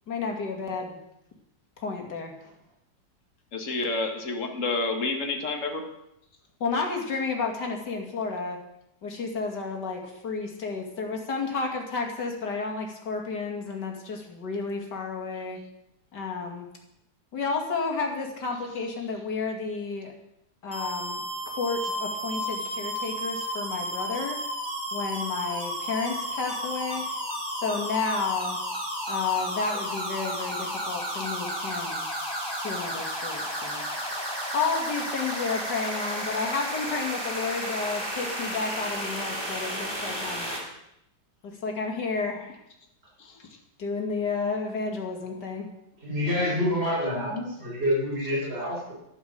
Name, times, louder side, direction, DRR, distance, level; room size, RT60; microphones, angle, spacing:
voice 1, 0.1-1.0 1.8-2.3 6.6-8.6 9.0-15.6 16.1-16.7 17.3-20.1 20.6-24.4 24.9-27.0 27.5-28.6 29.1-32.0 32.6-33.9 34.5-40.5 41.4-42.6 43.8-45.7, left 4 dB, 65° left, 1 dB, 2.9 m, -31 dB
voice 2, 3.5-5.8 31.1-31.3, left 3 dB, 45° left, 3 dB, 2.1 m, -29 dB
sound 1, 20.7-40.6, equal, 10° right, 4.2 m, -32 dB
voice 3, 46.0-48.9, left 1 dB, 30° right, -5 dB, 5.2 m, -27 dB
12.0 x 10.5 x 6.8 m, 0.82 s
omnidirectional pair, 2.0 m